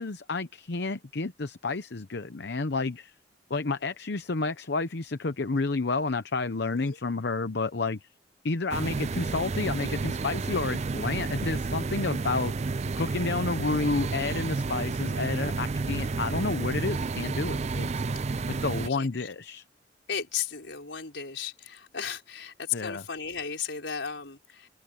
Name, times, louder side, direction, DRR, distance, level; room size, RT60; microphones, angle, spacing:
voice 1, 0.0-3.1 3.5-8.1 8.4-18.0 18.5-19.6 22.7-23.0, left 3 dB, 65° left, 0.8 m, -30 dB
sound 1, 8.7-18.9, right 3 dB, 40° right, 0.4 m, -31 dB
voice 2, 18.8-19.3 20.1-24.7, left 7 dB, 80° left, 4.6 m, -35 dB
head